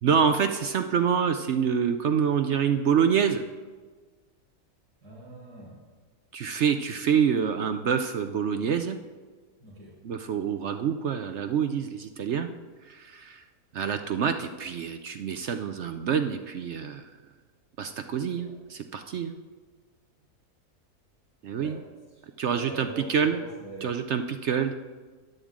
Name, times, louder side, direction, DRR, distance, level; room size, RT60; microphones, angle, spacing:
voice 1, 0.0-3.4 6.3-9.0 10.0-12.5 12.9-13.4 13.7-17.0 17.8-19.3 21.4-21.8 22.4-23.4 23.8-24.7, right 7 dB, 60° right, 7 dB, 0.8 m, -26 dB
voice 2, 5.0-5.8 9.6-9.9 18.3-18.5 19.1-19.2 21.6-21.8 22.1-23.9, right 2 dB, 80° right, -11 dB, 5.0 m, -43 dB
13.5 x 10.0 x 3.7 m, 1.4 s
omnidirectional pair, 1.6 m